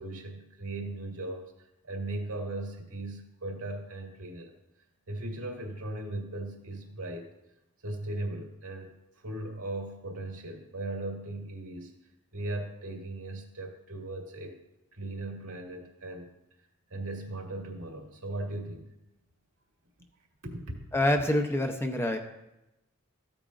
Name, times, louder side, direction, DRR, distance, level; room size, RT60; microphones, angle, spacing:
voice 1, 0.0-1.4 1.8-4.5 5.1-7.3 7.8-8.9 9.2-11.9 12.3-14.6 14.9-16.3 16.9-18.9 20.4-20.9, right 2 dB, 80° right, 0 dB, 2.1 m, -38 dB
voice 2, 20.9-22.2, left 1 dB, 10° left, 4 dB, 0.7 m, -26 dB
14.0 x 8.7 x 2.5 m, 0.91 s
head